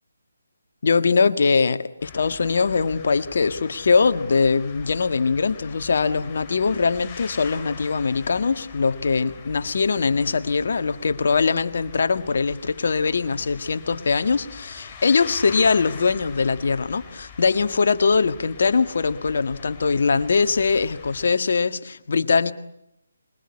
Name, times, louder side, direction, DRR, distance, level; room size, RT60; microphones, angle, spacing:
voice 1, 0.8-22.5, left 4 dB, 60° left, 1.7 m, -22 dB
sound 1, 2.0-21.3, left 5 dB, 20° left, 2.9 m, -43 dB
26.5 x 22.0 x 9.8 m
figure-of-eight pair, 155°, 0 cm